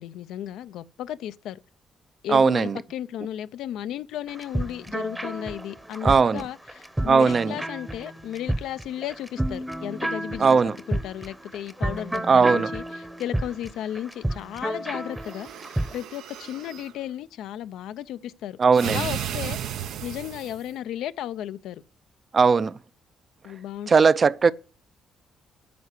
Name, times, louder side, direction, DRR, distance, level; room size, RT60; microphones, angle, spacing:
voice 1, 0.0-1.6 2.2-15.5 15.9-21.8 23.4-24.1, left 11 dB, 85° left, 0.4 m, -34 dB
voice 2, 2.3-2.8 6.0-6.4 7.1-7.5 10.4-10.7 12.3-12.7 18.6-19.0 22.3-22.8 23.9-24.5, right 5 dB, 40° right, 0.4 m, -18 dB
sound 1, 4.3-15.9, right 1 dB, 10° right, 0.8 m, -31 dB
sound 2, 15.2-16.9 18.7-20.7, right 10 dB, 85° right, 0.6 m, -34 dB
9.4 x 5.5 x 8.2 m
cardioid pair, 90°, 0 cm